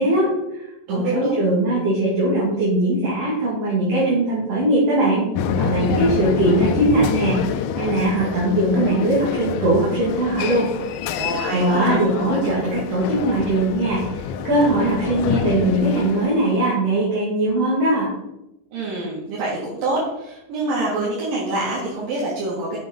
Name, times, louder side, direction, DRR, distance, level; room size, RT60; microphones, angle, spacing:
voice 1, 0.0-5.2 5.6-7.4 7.8-10.7 11.5-18.1, right 1 dB, 50° right, -6 dB, 3.0 m, -20 dB
voice 2, 0.9-1.4 11.1-12.0 18.7-22.8, right 2 dB, 85° right, -7 dB, 3.6 m, -26 dB
sound 1, 5.4-16.6, left 7 dB, 80° left, 2.0 m, -27 dB
7.3 x 6.2 x 5.3 m, 0.90 s
omnidirectional pair, 3.9 m